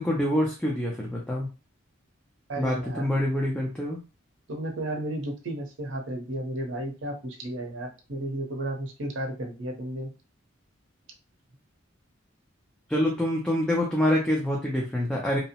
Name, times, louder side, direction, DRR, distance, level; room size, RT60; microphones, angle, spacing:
voice 1, 0.0-1.5 2.6-4.0 12.9-15.4, left 1 dB, 5° left, -3 dB, 0.4 m, -26 dB
voice 2, 2.5-3.2 4.5-10.1, right 1 dB, 65° right, 3 dB, 0.7 m, -33 dB
2.8 x 2.0 x 2.8 m, 0.32 s
head